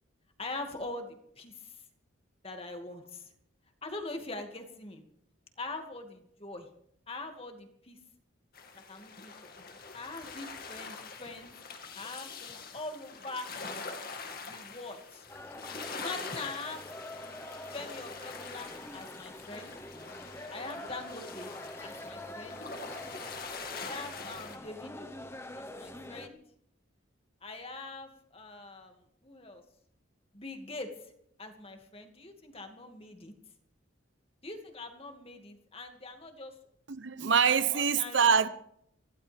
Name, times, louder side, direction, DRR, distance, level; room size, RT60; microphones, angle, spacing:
voice 1, 0.4-1.8 2.4-3.3 3.8-5.0 5.6-6.7 7.1-8.0 8.9-9.5 9.9-11.5 11.9-13.5 14.5-15.3 15.9-16.8 17.7-19.7 20.5-21.5 21.8-22.6 23.7-25.1 25.6-26.4 27.4-29.0 29.2-29.6 30.3-31.1 31.4-33.3 34.4-36.6 37.7-38.3, left 2 dB, 30° left, 2.3 m, -43 dB
sound 1, 8.5-24.6, left 4 dB, 50° left, 2.3 m, -44 dB
sound 2, 15.3-26.3, left 1 dB, 15° left, 1.1 m, -45 dB
voice 2, 36.9-38.5, right 6 dB, 65° right, 0.9 m, -25 dB
24.5 x 16.0 x 3.6 m
head